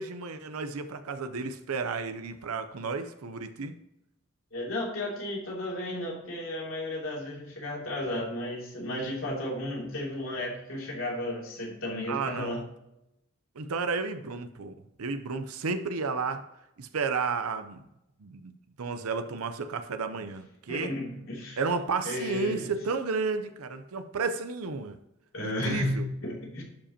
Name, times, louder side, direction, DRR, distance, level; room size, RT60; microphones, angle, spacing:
voice 1, 0.0-3.7 12.1-12.6 13.6-16.4 16.8-17.9 18.2-18.5 18.8-20.9 21.6-25.0 25.4-26.0, right 4 dB, 90° right, 9 dB, 0.6 m, -32 dB
voice 2, 4.5-12.6 20.7-21.6 22.0-22.7 25.3-26.6, left 1 dB, 70° left, -3 dB, 3.0 m, -33 dB
11.5 x 5.1 x 2.9 m, 0.86 s
head